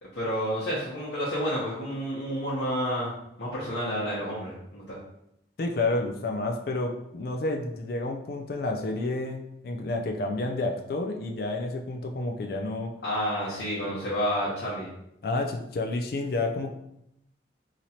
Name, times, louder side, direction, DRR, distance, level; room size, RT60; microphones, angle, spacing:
voice 1, 0.0-3.1 3.4-5.0 13.0-14.9, equal, 75° left, -8 dB, 0.9 m, -30 dB
voice 2, 5.6-12.9 15.2-16.7, left 2 dB, 55° left, 3 dB, 0.4 m, -30 dB
4.0 x 3.0 x 2.8 m, 0.80 s
head